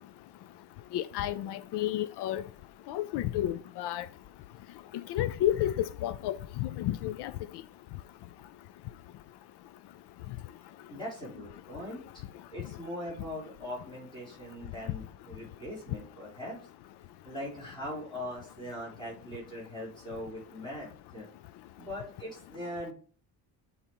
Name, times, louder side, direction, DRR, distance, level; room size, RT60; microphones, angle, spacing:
voice 1, 0.9-2.4 2.9-4.1 5.1-7.3, left 12 dB, 85° left, 0.5 m, -31 dB
voice 2, 10.9-16.6 17.2-21.3 21.8-22.9, left 1 dB, 10° left, 3.7 m, -41 dB
9.2 x 4.1 x 4.3 m
cardioid pair, 150°, 39 cm